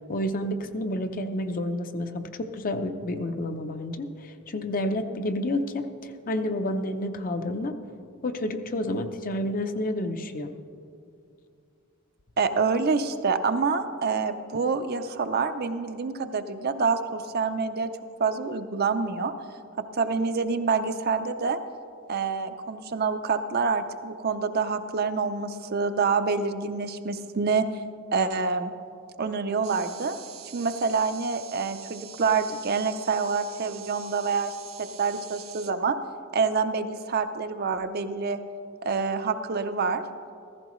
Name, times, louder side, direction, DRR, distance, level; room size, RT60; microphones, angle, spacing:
voice 1, 0.1-7.8 8.2-10.5, left 1 dB, 40° left, 7 dB, 0.6 m, -30 dB
voice 2, 12.4-17.9 18.2-19.3 19.8-21.6 22.1-27.7 28.1-28.7 29.2-30.2 30.5-36.0 36.3-38.4 38.8-40.0, right 5 dB, 50° right, 9 dB, 0.5 m, -27 dB
sound 1, 29.6-35.7, right 10 dB, 85° right, 0.7 m, -45 dB
15.0 x 14.5 x 3.1 m, 2.4 s
head